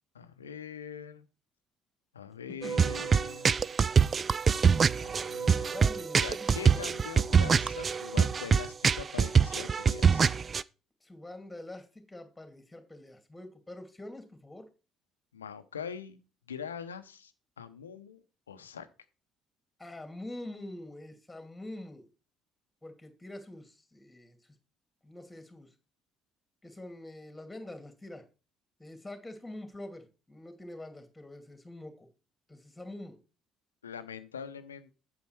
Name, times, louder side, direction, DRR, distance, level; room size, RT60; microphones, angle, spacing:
voice 1, 0.1-1.3 2.1-3.5 5.0-5.9 6.2-10.4 15.3-16.2 16.5-18.9 33.8-34.9, left 7 dB, 85° left, 11 dB, 0.7 m, -43 dB
sound 1, 2.6-10.6, right 6 dB, 35° right, 0.4 m, -25 dB
voice 2, 3.0-3.3 5.7-7.0 11.0-14.7 19.8-22.1 22.8-24.4 25.0-25.7 26.6-28.2 28.8-32.1 32.5-33.2, left 1 dB, 10° left, 6 dB, 2.5 m, -45 dB
8.5 x 7.1 x 4.5 m, 0.33 s
figure-of-eight pair, 50°, 0 cm